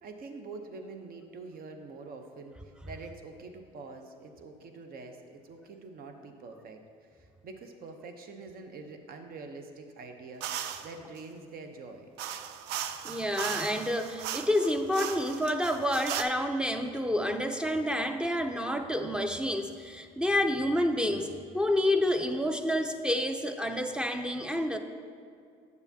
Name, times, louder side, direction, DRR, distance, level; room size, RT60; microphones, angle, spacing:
voice 1, 0.0-6.8 7.1-12.1, right 3 dB, 55° right, 5 dB, 0.8 m, -45 dB
sound 1, 10.4-10.9 12.2-16.2, right 10 dB, 70° right, 0.4 m, -37 dB
voice 2, 13.0-21.3 21.5-24.8, left 1 dB, 5° right, 6 dB, 0.5 m, -29 dB
8.1 x 7.0 x 2.8 m, 2.3 s
supercardioid pair, 70°, 18 cm